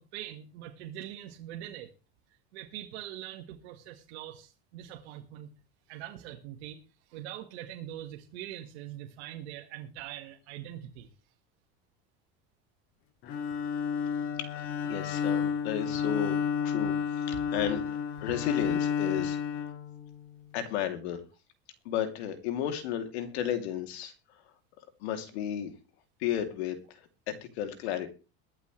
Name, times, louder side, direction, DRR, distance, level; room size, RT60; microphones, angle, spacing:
voice 1, 0.0-1.9 2.5-5.5 5.9-6.8 7.1-11.1 15.9-16.0, right 12 dB, 90° right, 2 dB, 1.8 m, -43 dB
Bowed string instrument, 13.2-20.4, left 7 dB, 40° left, 2.1 m, -31 dB
voice 2, 14.4-16.3 16.6-17.8 18.2-19.4 20.5-21.2 21.8-24.4 25.0-25.7 26.2-28.1, left 10 dB, 80° left, 6 dB, 3.0 m, -33 dB
22.5 x 8.3 x 3.3 m, 0.31 s
cardioid pair, 170°, 32 cm